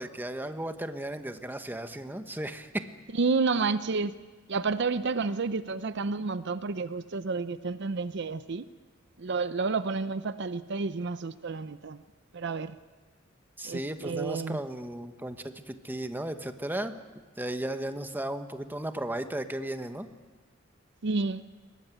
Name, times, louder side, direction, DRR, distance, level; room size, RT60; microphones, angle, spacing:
voice 1, 0.0-2.8 13.6-16.9 17.4-20.1, right 1 dB, 10° right, 8 dB, 1.1 m, -35 dB
voice 2, 3.1-4.1 4.5-8.7 9.2-12.0 12.3-12.8 13.6-14.6 21.0-21.4, right 4 dB, 60° right, 13 dB, 0.6 m, -30 dB
22.0 x 18.0 x 9.2 m, 1.3 s
head